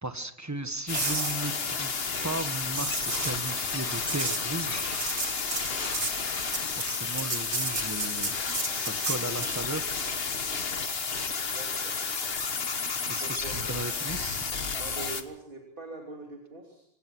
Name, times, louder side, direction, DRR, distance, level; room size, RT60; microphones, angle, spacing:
voice 1, 0.0-5.0 6.6-8.4 8.7-10.0 13.1-14.5, right 2 dB, 15° right, 8 dB, 1.4 m, -36 dB
sound 1, 0.9-15.2, left 5 dB, 55° left, 1.6 m, -32 dB
sound 2, 0.9-9.6 13.8-14.0, right 3 dB, 65° right, 2.6 m, -35 dB
voice 2, 11.4-11.9 13.2-13.8 14.7-16.9, right 3 dB, 45° right, 0 dB, 3.3 m, -43 dB
26.5 x 17.5 x 6.2 m, 0.74 s
omnidirectional pair, 1.2 m